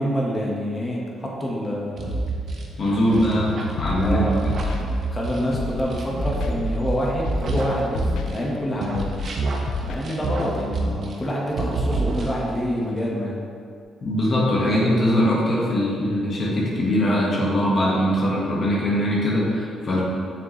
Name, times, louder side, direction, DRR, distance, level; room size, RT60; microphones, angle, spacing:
voice 1, 0.0-2.2 3.1-3.3 4.0-4.4 5.1-8.0 8.3-9.0 9.8-13.4, equal, 20° left, -4 dB, 1.5 m, -27 dB
sound 1, 2.0-8.5 8.8-11.3 11.6-12.6, right 2 dB, 55° right, 1.0 m, -27 dB
voice 2, 2.8-4.2 14.0-20.0, equal, 50° left, -6 dB, 1.6 m, -21 dB
Scratching (performance technique), 3.8-4.1 4.5-4.8 5.5-5.8 6.2-6.5 7.2-7.6 7.9-8.3 8.9-9.3 9.7-10.0, left 5 dB, 80° left, 0.5 m, -29 dB
6.9 x 6.4 x 3.3 m, 2.4 s
cardioid pair, 90°, 0 cm